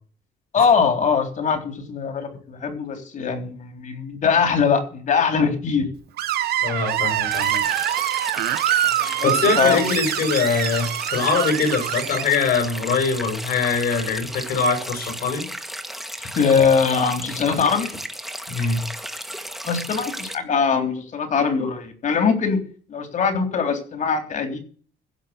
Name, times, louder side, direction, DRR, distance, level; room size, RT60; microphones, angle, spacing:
voice 1, 0.5-5.9 9.2-9.8 16.2-18.0 19.7-22.6 22.9-24.6, left 6 dB, 50° left, 6 dB, 3.7 m, -22 dB
Screech, 6.2-12.2, right 12 dB, 70° right, 1.1 m, -24 dB
voice 2, 6.6-7.6 9.2-15.5 18.5-18.9, left 5 dB, 65° left, 6 dB, 5.7 m, -23 dB
sound 1, 7.3-20.4, equal, ahead, 1.8 m, -34 dB
16.0 x 5.7 x 7.9 m, 0.43 s
cardioid pair, 110°, 17 cm